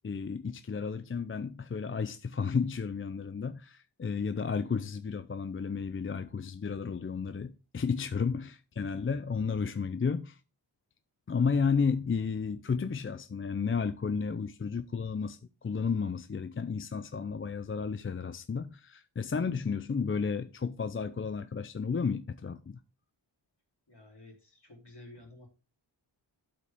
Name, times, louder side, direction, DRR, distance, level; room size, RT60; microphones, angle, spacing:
voice 1, 0.0-10.4 11.3-22.8, left 5 dB, 30° left, 0.5 m, -32 dB
voice 2, 23.9-25.5, left 2 dB, 60° left, 3.5 m, -52 dB
12.0 x 4.9 x 3.6 m
wide cardioid pair, 50°, 46 cm